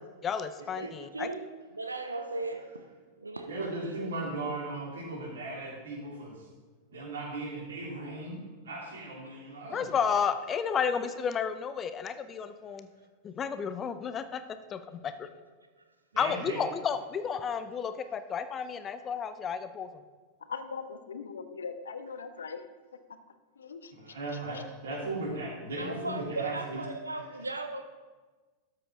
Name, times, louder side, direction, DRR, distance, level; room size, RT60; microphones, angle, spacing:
voice 1, 0.2-1.3 9.7-12.9 13.2-14.4 14.7-15.3 16.2-19.9, left 7 dB, 25° left, 11 dB, 0.6 m, -32 dB
voice 2, 0.8-2.9 3.2-4.1 12.7-12.8 15.8-15.9 25.8-27.8, right 3 dB, 80° right, 6 dB, 0.6 m, -37 dB
voice 3, 3.5-6.5 6.9-9.9 16.1-16.6 24.0-26.8, right 2 dB, 65° right, -2 dB, 3.1 m, -37 dB
voice 4, 20.5-22.7 23.6-23.9 24.5-24.6, left 5 dB, 70° left, 10 dB, 0.7 m, -40 dB
12.5 x 7.7 x 3.8 m, 1.3 s
figure-of-eight pair, 90°, 0 cm